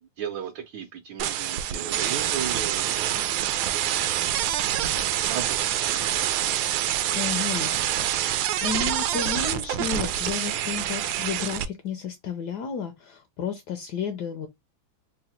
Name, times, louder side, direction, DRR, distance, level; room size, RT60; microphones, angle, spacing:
voice 1, 0.0-3.2 3.6-4.0 5.3-6.0, right 8 dB, 70° right, 1.3 m, -36 dB
sound 1, 1.2-11.6, right 11 dB, 90° right, 1.4 m, -26 dB
voice 2, 7.1-8.3 8.6-14.5, left 7 dB, 75° left, 1.0 m, -32 dB
3.8 x 2.1 x 4.1 m
omnidirectional pair, 2.2 m